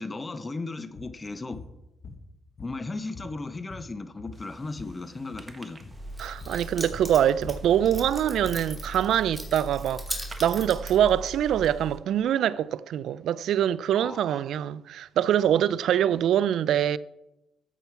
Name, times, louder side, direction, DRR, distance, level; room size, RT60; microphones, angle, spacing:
voice 1, 0.0-1.6 2.6-5.8 14.0-14.3, left 3 dB, 25° left, 0.8 m, -36 dB
sound 1, 0.9-1.1 1.5-1.7 2.0-2.9 3.1-5.0 5.2-5.5 5.8-6.0 6.4-6.6 6.9-8.6, left 4 dB, 45° left, 1.7 m, -44 dB
sound 2, 4.3-12.0, right 3 dB, 25° right, 1.6 m, -54 dB
Keys jangling, 5.9-11.9, equal, 5° left, 2.8 m, -38 dB
voice 2, 6.2-10.0 10.4-17.0, right 10 dB, 75° right, 0.4 m, -24 dB
14.0 x 8.3 x 4.7 m
cardioid pair, 90°, 0 cm